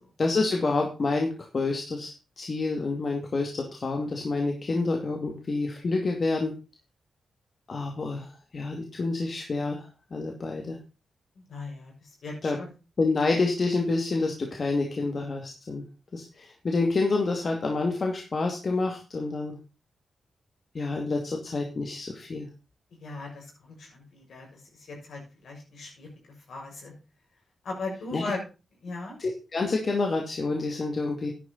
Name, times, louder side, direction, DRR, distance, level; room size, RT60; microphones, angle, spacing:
voice 1, 0.2-6.5 7.7-10.8 12.4-12.6 13.0-15.8 16.1-19.6 20.7-22.5 28.1-28.2 29.2-31.3, left 3 dB, 50° left, 2 dB, 2.4 m, -28 dB
voice 2, 11.3-12.7 23.0-26.1 26.5-26.9 27.6-28.4 28.8-29.1, left 3 dB, 75° left, 0 dB, 6.8 m, -38 dB
11.0 x 10.5 x 4.1 m, 0.31 s
cardioid pair, 60°, 0 cm